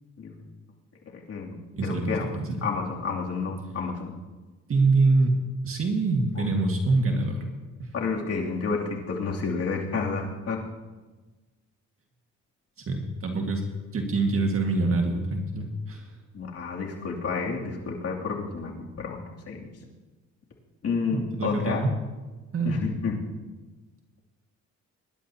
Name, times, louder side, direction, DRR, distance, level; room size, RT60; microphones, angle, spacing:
voice 1, 1.1-2.2 2.6-4.1 6.4-6.5 7.9-10.6 16.3-19.7 20.8-21.8 22.6-23.2, left 4 dB, 55° left, -2 dB, 2.9 m, -30 dB
voice 2, 1.8-2.6 4.7-7.5 7.8-7.9 12.9-13.6 13.9-16.1 21.1-21.9 22.5-22.8, right 3 dB, 45° right, 2 dB, 1.9 m, -25 dB
24.0 x 11.5 x 2.9 m, 1.3 s
cardioid pair, 90°, 30 cm